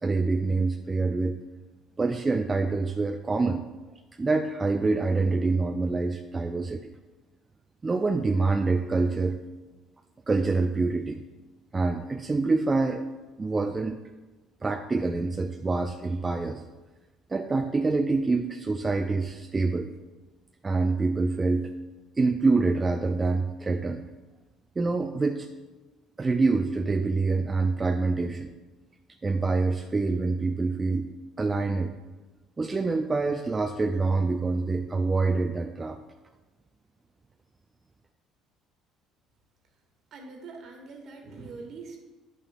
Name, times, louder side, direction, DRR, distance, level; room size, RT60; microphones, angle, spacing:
voice 1, 0.0-1.4 2.0-3.7 4.2-6.9 7.8-9.4 10.3-11.2 11.7-13.1 13.4-14.0 14.6-16.6 17.3-19.9 20.6-21.7 22.2-24.1 24.8-25.5 26.2-28.5 29.2-31.1 31.4-31.9 32.6-36.0, right 3 dB, 25° right, 5 dB, 0.4 m, -26 dB
voice 2, 40.1-42.0, right 4 dB, 60° right, 2 dB, 1.4 m, -43 dB
9.6 x 5.7 x 2.5 m, 1.2 s
hypercardioid pair, 70°, 0 cm